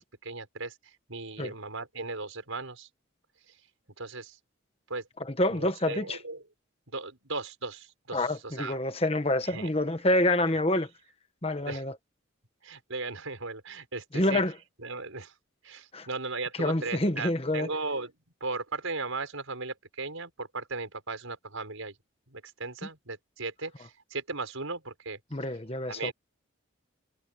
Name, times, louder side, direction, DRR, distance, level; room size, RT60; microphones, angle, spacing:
voice 1, 0.0-2.9 4.0-4.4 4.9-5.1 5.5-6.4 6.9-8.9 9.4-9.7 11.6-11.8 12.6-14.4 14.8-15.3 15.6-18.1 18.4-21.9 22.3-25.2 25.9-26.1, right 3 dB, 85° right, 6.0 m, -37 dB
voice 2, 5.3-6.2 8.1-10.9 11.4-11.9 14.1-14.5 15.9-16.1 16.6-17.7 25.3-26.1, left 1 dB, 30° left, 1.4 m, -27 dB
head